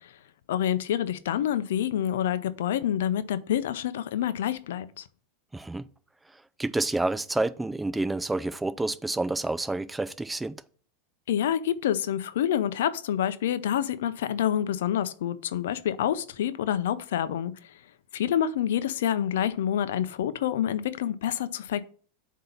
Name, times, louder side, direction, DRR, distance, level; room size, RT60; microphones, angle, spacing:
voice 1, 0.5-5.0 11.3-17.5 18.1-21.8, left 10 dB, 80° left, 0.5 m, -27 dB
voice 2, 5.5-5.8 6.6-10.5, right 2 dB, 10° right, 0.4 m, -29 dB
7.6 x 2.8 x 5.7 m
hypercardioid pair, 115°, 0 cm